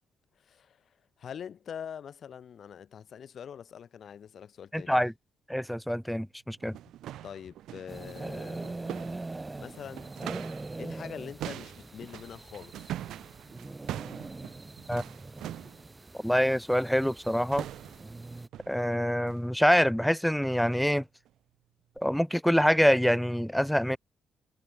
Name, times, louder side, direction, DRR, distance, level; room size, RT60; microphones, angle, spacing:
voice 1, 0.4-5.0 7.2-8.8 9.6-10.1 10.8-13.0, left 8 dB, 55° left, 5.2 m, -44 dB
voice 2, 4.7-5.1 5.5-6.8 14.9-15.0 16.1-17.7 18.7-21.0 22.0-24.0, equal, ahead, 0.5 m, -25 dB
sound 1, 6.5-10.7 11.0-15.8 17.0-17.2 17.5-18.2 18.5-18.8 19.3-19.5 19.8-20.0 20.5-20.7 21.3-21.4 22.0-22.1, right 13 dB, 80° right, 4.0 m, -43 dB
sound 2, 7.9-18.5, right 2 dB, 20° right, 3.6 m, -42 dB
cardioid pair, 90°, 0 cm